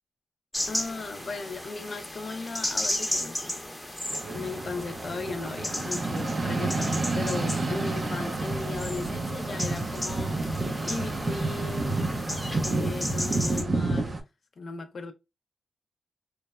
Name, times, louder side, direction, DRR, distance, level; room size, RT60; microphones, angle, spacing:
sound 1, 0.5-13.6, left 1 dB, 10° left, 0.8 m, -35 dB
voice 1, 0.7-4.0 4.3-10.5 10.8-12.1 12.6-14.2 14.6-15.1, left 4 dB, 60° left, 0.4 m, -37 dB
sound 2, 4.1-14.2, right 2 dB, 45° right, 0.6 m, -30 dB
3.1 x 2.0 x 2.2 m
cardioid pair, 85°, 0 cm